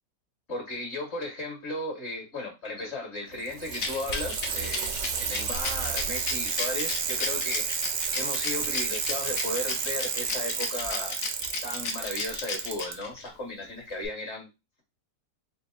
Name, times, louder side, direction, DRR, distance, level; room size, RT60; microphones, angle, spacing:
voice 1, 0.5-7.7 8.1-11.2 11.6-14.5, left 2 dB, 45° left, 1 dB, 1.6 m, -35 dB
Bicycle, 3.3-12.9 14.0-14.1, right 6 dB, 70° right, 0.7 m, -31 dB
Rattle, 3.7-13.3, left 5 dB, 60° left, 1.1 m, -34 dB
4.1 x 2.0 x 3.7 m, 0.24 s
omnidirectional pair, 1.8 m